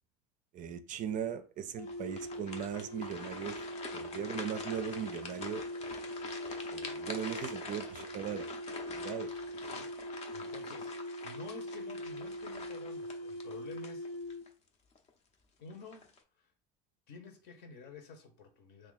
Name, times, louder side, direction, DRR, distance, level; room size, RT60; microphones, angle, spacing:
voice 1, 0.5-3.5 3.9-5.6 6.7-8.5 8.9-9.3 9.6-9.7, right 9 dB, 40° right, 0.4 m, -39 dB
sound 1, 1.7-14.5, equal, 80° left, 0.6 m, -42 dB
sound 2, 1.8-14.5 14.9-15.1 15.7-16.2, left 4 dB, 35° left, 0.6 m, -46 dB
voice 2, 9.5-14.1 15.6-16.1 16.4-16.5 17.1-18.9, left 4 dB, 55° left, 0.9 m, -50 dB
2.8 x 2.5 x 4.0 m
supercardioid pair, 115°, 20 cm